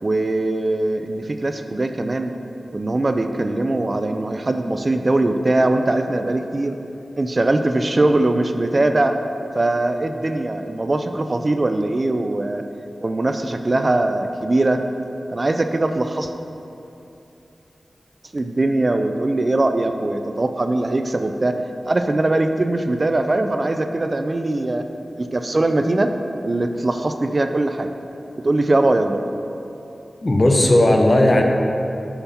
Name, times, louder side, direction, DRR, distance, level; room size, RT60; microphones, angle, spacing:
voice 1, 0.0-2.3 2.7-6.8 7.2-9.1 9.5-12.6 13.0-14.8 15.3-16.3 18.3-21.6 21.9-24.9 25.2-26.1 26.4-27.9 28.4-29.2, right 2 dB, 40° right, 7 dB, 0.3 m, -21 dB
voice 2, 30.2-31.4, left 1 dB, 35° left, 2 dB, 0.7 m, -15 dB
5.7 x 5.6 x 4.1 m, 2.8 s
wide cardioid pair, 65°, 0 cm